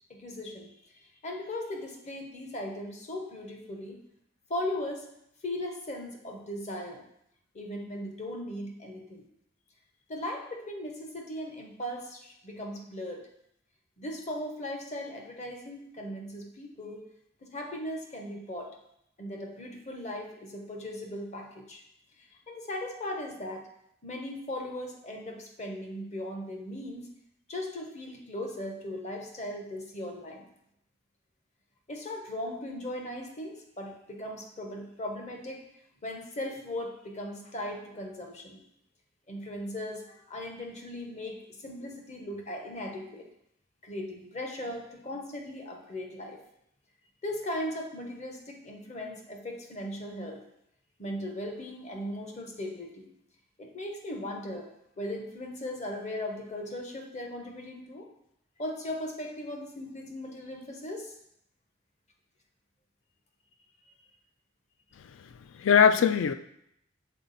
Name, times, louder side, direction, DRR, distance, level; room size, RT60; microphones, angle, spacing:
voice 1, 0.1-4.0 4.5-5.1 5.4-7.0 7.5-9.2 10.1-13.3 14.0-17.1 17.4-18.7 19.2-21.8 22.2-23.7 24.0-27.1 27.5-30.4 31.9-35.6 36.0-38.6 39.3-43.3 43.8-46.4 47.2-50.4 51.0-53.1 53.6-54.7 55.0-58.1 58.6-61.1, left 1 dB, 35° left, 2 dB, 0.9 m, -38 dB
voice 2, 65.0-66.3, left 7 dB, 65° left, 11 dB, 0.3 m, -22 dB
5.9 x 4.1 x 4.0 m, 0.76 s
head